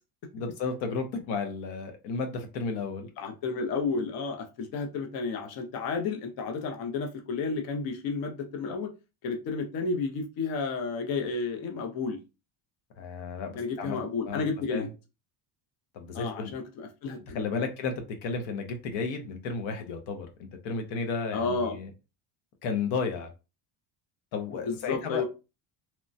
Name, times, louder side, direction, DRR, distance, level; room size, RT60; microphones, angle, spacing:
voice 1, 0.3-3.1 13.0-14.0 14.2-14.4 14.7-14.9 15.9-16.5 17.3-20.3 20.6-21.9 22.6-23.3 24.3-25.3, left 4 dB, 85° left, 5 dB, 0.8 m, -33 dB
voice 2, 3.2-8.9 9.2-12.2 13.6-14.9 16.1-17.7 21.3-21.8 24.6-25.3, left 4 dB, 50° left, 4 dB, 0.6 m, -32 dB
3.0 x 2.1 x 2.5 m, 0.29 s
cardioid pair, 155°, 46 cm